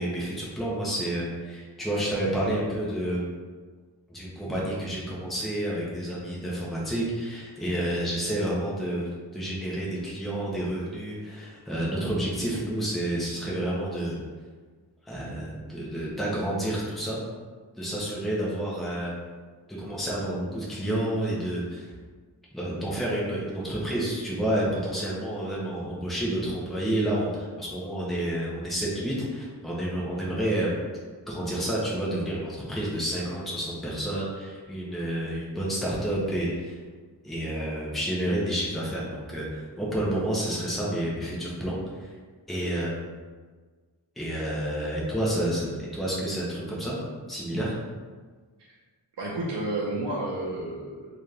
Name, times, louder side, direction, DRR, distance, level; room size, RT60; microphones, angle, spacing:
voice 1, 0.0-3.3 4.1-14.2 15.1-17.2 17.8-19.1 19.8-21.9 22.5-30.7 31.3-36.8 37.2-42.1 42.5-43.1 44.2-47.0 47.3-47.8, right 1 dB, ahead, -6 dB, 0.8 m, -29 dB
voice 2, 49.2-51.2, right 1 dB, 70° right, -4 dB, 0.7 m, -31 dB
4.1 x 2.5 x 3.3 m, 1.5 s
wide cardioid pair, 90°, 44 cm